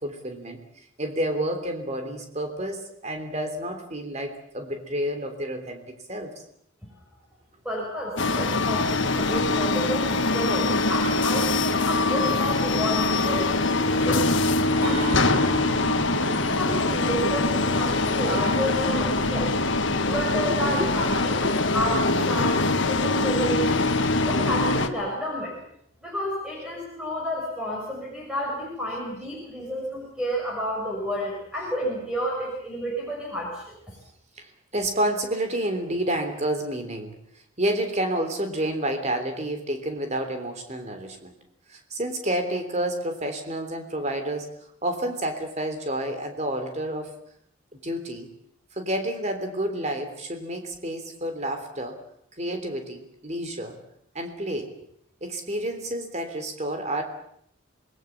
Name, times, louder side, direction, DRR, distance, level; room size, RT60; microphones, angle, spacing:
voice 1, 0.0-0.6 1.0-6.4 13.8-13.9 14.6-14.8 16.7-16.8 17.2-17.3 20.5-20.9 21.4-21.6 34.4-37.2 37.6-41.3 41.7-44.5 44.8-47.2 47.8-48.3 48.7-52.0 52.4-53.8 54.1-54.7 55.2-57.0, right 1 dB, 30° right, 6 dB, 3.4 m, -30 dB
voice 2, 7.6-14.3 14.5-15.3 16.4-19.5 20.0-21.5 21.7-23.6 24.3-25.6 26.0-33.7, equal, 5° right, -4 dB, 6.4 m, -30 dB
sound 1, 8.2-24.9, left 2 dB, 55° left, 1.6 m, -23 dB
Acoustic guitar, 14.8-18.7, right 2 dB, 85° right, 5.2 m, -35 dB
27.0 x 20.5 x 7.3 m, 0.70 s
head